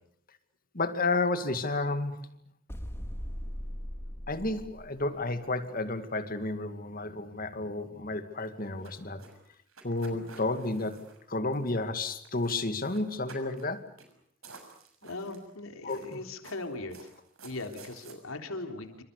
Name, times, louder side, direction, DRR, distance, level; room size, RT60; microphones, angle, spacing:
voice 1, 0.7-2.2 4.3-9.2 9.8-13.8 15.8-16.2, left 2 dB, 45° left, 9 dB, 2.3 m, -31 dB
sound 1, 2.7-5.4, equal, 10° left, 2.4 m, -39 dB
sound 2, 8.4-12.0 12.2-12.6 12.8-13.7 14.0-14.1 14.4-15.5 15.9-18.1, right 4 dB, 80° right, 6.6 m, -52 dB
voice 2, 15.0-17.1 17.4-19.0, left 2 dB, 85° left, 5 dB, 3.5 m, -39 dB
28.5 x 26.0 x 6.7 m, 0.67 s
head